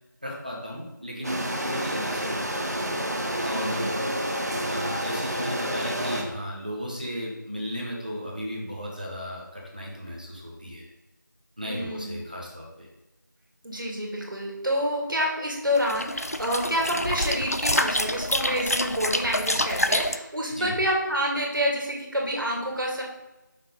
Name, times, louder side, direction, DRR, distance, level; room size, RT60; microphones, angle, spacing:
voice 1, 0.2-2.5 3.4-4.4 4.7-10.9 11.6-12.9 20.5-20.8, equal, 25° right, -3 dB, 0.9 m, -35 dB
sound 1, 1.2-6.2, equal, 50° right, 0.9 m, -29 dB
voice 2, 3.5-4.1 11.6-12.2 13.6-23.0, equal, 75° right, -2 dB, 2.0 m, -28 dB
sound 2, 15.7-20.2, left 1 dB, 50° left, 0.3 m, -27 dB
5.8 x 3.6 x 4.9 m, 0.99 s
figure-of-eight pair, 175°, 11 cm